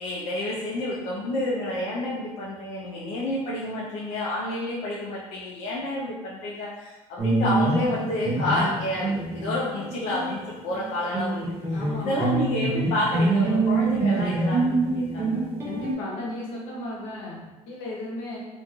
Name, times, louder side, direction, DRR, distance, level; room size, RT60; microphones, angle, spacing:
voice 1, 0.0-15.5, left 1 dB, 60° left, -6 dB, 0.5 m, -29 dB
sound 1, 7.2-10.4 10.7-15.9, right 2 dB, 20° right, 0.5 m, -25 dB
voice 2, 11.7-12.3 15.6-18.4, left 1 dB, 85° left, -4 dB, 0.9 m, -35 dB
3.1 x 2.5 x 2.3 m, 1.1 s
cardioid pair, 175°, 12 cm